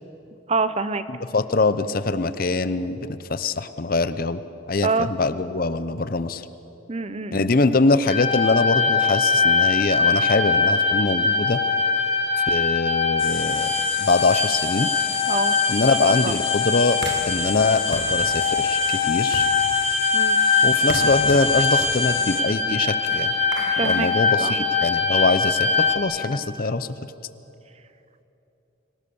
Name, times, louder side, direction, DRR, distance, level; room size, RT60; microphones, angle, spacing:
voice 1, 0.5-1.0 4.8-5.1 6.9-7.5 15.3-15.5 16.1-16.3 20.1-20.4 23.7-24.1 24.4-24.6, right 4 dB, 30° right, 13 dB, 0.6 m, -25 dB
voice 2, 1.1-6.4 7.3-11.6 12.5-13.7 14.0-14.9 15.7-17.0 17.3-19.5 20.6-23.3 23.8-26.9, left 3 dB, 45° left, 13 dB, 0.6 m, -23 dB
sound 1, 8.1-26.0, left 4 dB, 30° left, 2.1 m, -22 dB
sound 2, 13.2-22.4, left 11 dB, 80° left, 1.5 m, -34 dB
sound 3, 16.9-25.1, right 2 dB, 55° right, 1.5 m, -38 dB
25.5 x 18.0 x 7.0 m, 2.9 s
head